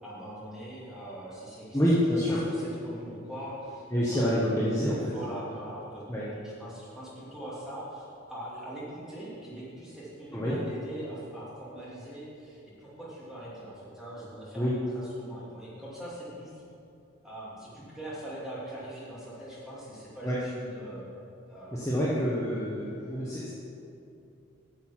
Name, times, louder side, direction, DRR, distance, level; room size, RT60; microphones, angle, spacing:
voice 1, 0.0-2.0 2.5-4.5 5.0-6.0 6.3-16.5 17.2-21.0 21.5-22.2, right 1 dB, ahead, -9 dB, 2.4 m, -42 dB
voice 2, 1.7-2.4 3.9-5.1 6.1-6.2 10.3-10.6 14.6-14.7 20.2-20.4 21.7-23.5, equal, 15° left, -8 dB, 1.1 m, -27 dB
9.0 x 6.7 x 5.7 m, 2.6 s
head